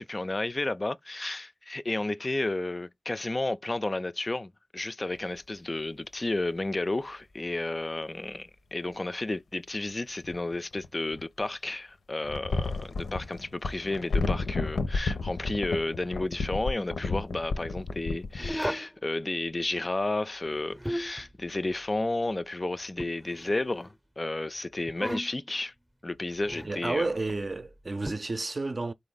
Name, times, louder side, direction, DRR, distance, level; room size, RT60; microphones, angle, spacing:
voice 1, 0.0-25.7 26.0-27.1, left 2 dB, 35° left, 0.3 m, -32 dB
sound 1, 8.0-8.1 10.2-11.4 12.2-18.6, left 3 dB, 90° left, 0.6 m, -32 dB
sound 2, 18.4-19.0 20.5-21.3 23.0-23.9 24.9-25.5 26.4-26.8 28.1-28.2, equal, 5° right, 0.7 m, -35 dB
voice 2, 26.6-28.9, right 3 dB, 45° right, 0.5 m, -31 dB
4.1 x 2.6 x 3.8 m
cardioid pair, 45°, 0 cm